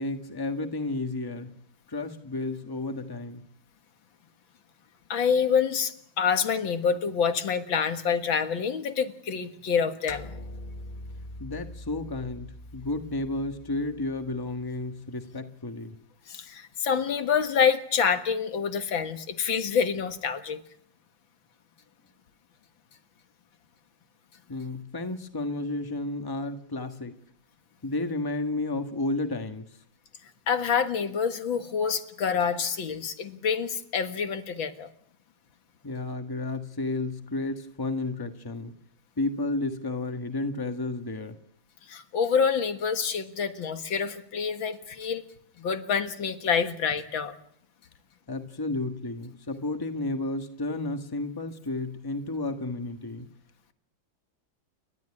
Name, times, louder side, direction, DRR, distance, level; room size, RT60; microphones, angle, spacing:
voice 1, 0.0-1.5 1.9-3.5 11.4-16.0 24.5-27.2 27.8-29.7 35.8-38.8 39.2-41.4 48.3-53.3, left 2 dB, 15° left, 7 dB, 1.4 m, -32 dB
voice 2, 5.1-10.3 16.3-20.6 30.5-34.9 41.9-45.2 45.6-47.3, left 6 dB, 85° left, 8 dB, 2.3 m, -27 dB
sound 1, 10.1-14.8, left 1 dB, 35° left, 0.8 m, -43 dB
29.5 x 12.5 x 9.8 m, 0.68 s
omnidirectional pair, 2.1 m